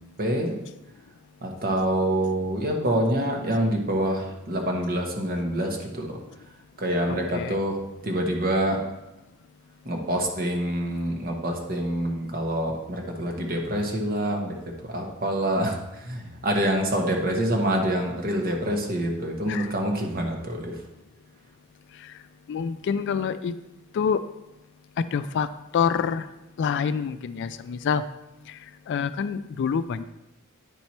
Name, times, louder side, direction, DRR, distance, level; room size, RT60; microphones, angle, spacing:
voice 1, 0.2-0.6 1.4-6.2 6.8-8.8 9.8-14.5 14.8-20.8, right 1 dB, 45° right, 1 dB, 1.1 m, -26 dB
voice 2, 22.5-23.5 23.9-24.2 25.1-25.5 25.7-26.3 26.6-28.0 28.5-28.6 28.9-30.0, left 6 dB, 55° left, 12 dB, 0.3 m, -26 dB
9.0 x 4.5 x 4.2 m, 0.94 s
head